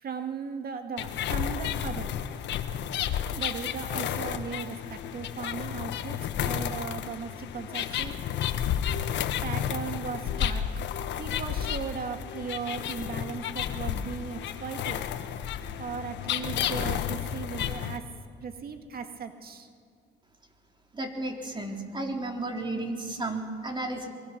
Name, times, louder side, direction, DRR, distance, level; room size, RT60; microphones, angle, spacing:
voice 1, 0.0-2.1 3.3-8.2 9.4-10.7 11.2-15.0 15.8-18.1 18.4-19.7, right 5 dB, 50° right, 6 dB, 2.0 m, -37 dB
sound 1, 1.0-18.0, left 9 dB, 70° left, 1.4 m, -32 dB
voice 2, 20.9-24.1, right 2 dB, 25° right, 2 dB, 3.9 m, -33 dB
24.0 x 23.5 x 6.1 m, 2.2 s
supercardioid pair, 80°, 19 cm